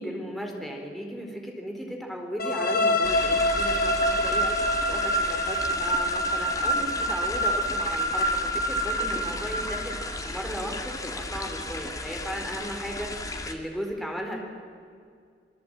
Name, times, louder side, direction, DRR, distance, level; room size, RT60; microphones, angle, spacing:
voice 1, 0.0-4.5 4.9-13.1 13.4-14.4, equal, ahead, 1 dB, 4.3 m, -36 dB
sound 1, 2.4-10.2, equal, 55° left, 3.5 m, -26 dB
sound 2, 3.0-13.5, left 2 dB, 20° left, 2.3 m, -35 dB
28.0 x 22.0 x 9.1 m, 2.2 s
head